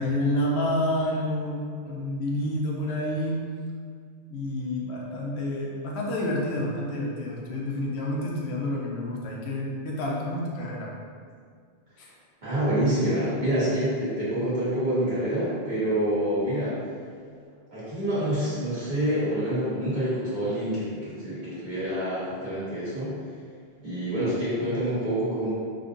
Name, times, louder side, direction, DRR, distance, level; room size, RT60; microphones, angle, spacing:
voice 1, 0.0-3.5 4.3-10.9 12.0-12.1, left 1 dB, 85° left, -3 dB, 0.9 m, -29 dB
voice 2, 12.4-16.8 17.7-23.2 23.8-25.5, right 1 dB, 45° right, -12 dB, 1.5 m, -27 dB
3.9 x 2.5 x 2.6 m, 2.1 s
omnidirectional pair, 1.1 m